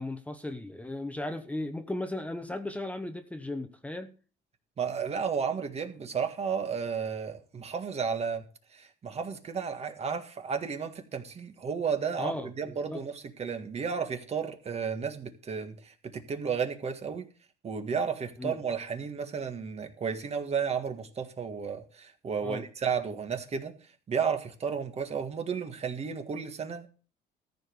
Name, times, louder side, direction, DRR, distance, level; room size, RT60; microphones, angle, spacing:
voice 1, 0.0-4.1 12.2-13.0 18.4-18.6 22.4-22.6, left 2 dB, 10° left, 1.0 m, -36 dB
voice 2, 4.8-8.4 8.7-17.3 17.6-23.7 24.1-26.9, right 6 dB, 40° right, 1.7 m, -33 dB
14.0 x 5.2 x 7.8 m
cardioid pair, 110°, 17 cm